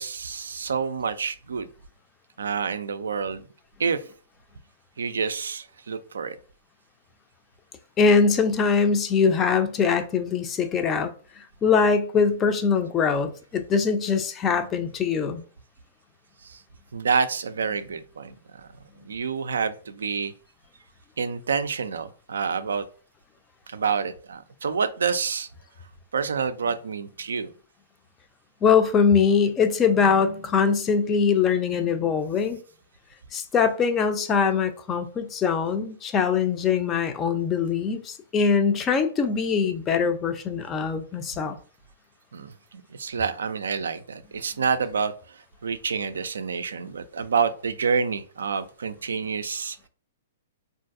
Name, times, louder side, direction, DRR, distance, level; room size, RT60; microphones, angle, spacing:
voice 1, 0.0-1.7 2.4-3.4 3.8-4.0 5.0-6.4 16.4-16.6 16.9-18.7 19.1-20.3 21.2-22.9 23.7-25.5 26.1-27.5 42.3-49.8, right 5 dB, 65° right, 0.3 m, -28 dB
voice 2, 8.0-15.4 28.6-32.6 33.3-41.6, left 6 dB, 20° left, 0.4 m, -22 dB
3.8 x 2.5 x 2.5 m
figure-of-eight pair, 110°, 0 cm